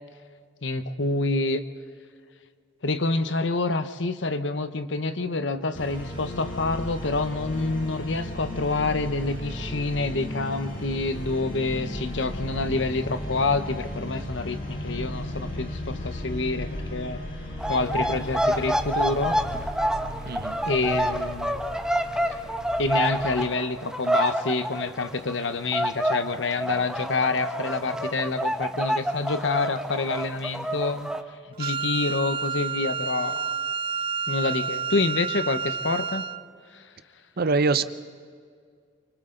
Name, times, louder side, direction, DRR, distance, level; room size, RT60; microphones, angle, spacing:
voice 1, 0.6-1.6 2.8-17.2 17.7-19.4 20.6-21.6 22.8-31.1 31.6-33.6 34.3-36.2 36.7-36.8, left 3 dB, 75° left, 10 dB, 1.0 m, -27 dB
sound 1, 5.7-23.2, left 1 dB, 50° left, 6.1 m, -35 dB
sound 2, 17.6-25.4 25.7-31.2, right 1 dB, 5° right, 0.9 m, -28 dB
voice 2, 20.3-20.6 31.6-31.7 37.4-37.8, right 4 dB, 55° right, 13 dB, 0.7 m, -24 dB
Wind instrument woodwind instrument, 31.6-36.4, right 6 dB, 30° right, 0.4 m, -30 dB
28.0 x 25.0 x 3.9 m, 2.1 s
head